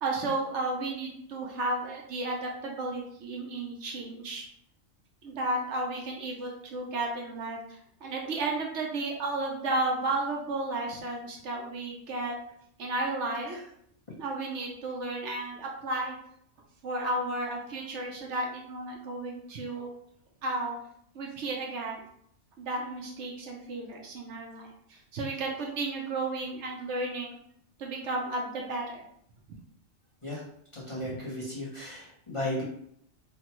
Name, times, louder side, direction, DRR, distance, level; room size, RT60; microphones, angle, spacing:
voice 1, 0.0-4.5 5.2-12.4 12.8-13.7 14.2-16.1 16.8-19.9 20.4-20.8 21.1-22.0 22.6-27.4 27.8-29.0 30.3-30.4 31.0-31.2, right 2 dB, 70° right, 0 dB, 0.8 m, -33 dB
voice 2, 30.7-32.6, left 1 dB, 30° left, -8 dB, 0.8 m, -35 dB
3.2 x 2.2 x 2.9 m, 0.70 s
omnidirectional pair, 1.3 m